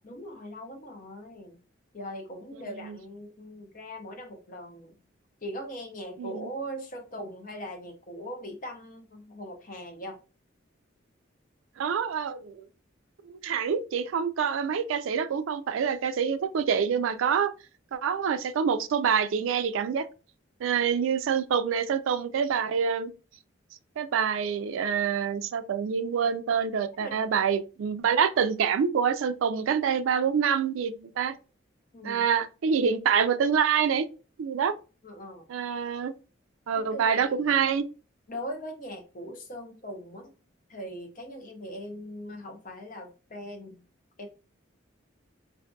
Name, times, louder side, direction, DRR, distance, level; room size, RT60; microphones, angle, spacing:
voice 1, 0.0-1.6 1.9-5.0 5.4-10.2 27.0-27.3 31.9-32.2 35.0-35.5 36.7-37.6 38.3-40.3 40.7-43.8 44.2-44.3, equal, 40° left, 0.6 m, -40 dB
voice 2, 11.8-12.7 13.3-17.5 17.9-20.1 20.6-23.1 24.0-31.3 32.0-34.1 34.4-34.7 35.5-36.2 36.7-37.8, right 7 dB, 80° right, 0.3 m, -26 dB
2.5 x 2.5 x 2.2 m
head